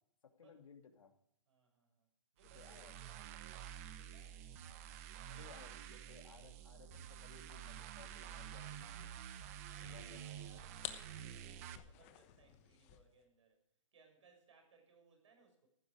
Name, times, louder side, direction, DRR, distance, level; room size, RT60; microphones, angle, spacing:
voice 1, 0.4-1.1 2.5-3.0 4.6-5.0 5.4-9.2 9.8-10.2, left 6 dB, 80° left, 5 dB, 2.6 m, -60 dB
voice 2, 1.5-2.1 2.3-4.5 5.2-6.2 9.6-13.6 13.9-15.7, right 4 dB, 65° right, 4 dB, 6.6 m, -68 dB
sound 1, 2.4-11.8, right 10 dB, 25° right, 0.9 m, -50 dB
sound 2, 4.5-12.0, equal, ahead, 3.4 m, -75 dB
sound 3, 7.8-13.2, left 12 dB, 25° left, 1.0 m, -54 dB
15.0 x 12.0 x 4.9 m, 0.74 s
hypercardioid pair, 165°, 17 cm